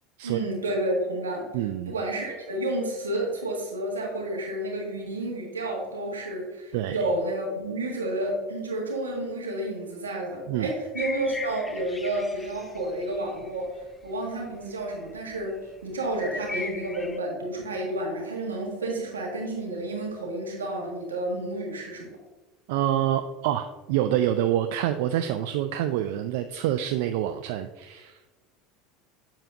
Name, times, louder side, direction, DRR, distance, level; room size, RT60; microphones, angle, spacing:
voice 1, 0.2-1.5 1.9-15.6 15.8-22.2, right 1 dB, 90° right, -1 dB, 1.6 m, -30 dB
voice 2, 1.5-1.9 6.7-7.0 10.5-10.7 22.7-28.2, right 11 dB, 65° right, 8 dB, 0.3 m, -27 dB
sound 1, 10.9-14.5 14.7-17.2, left 3 dB, 15° left, 0.6 m, -38 dB
7.4 x 7.1 x 2.5 m, 1.2 s
hypercardioid pair, 80°, 0 cm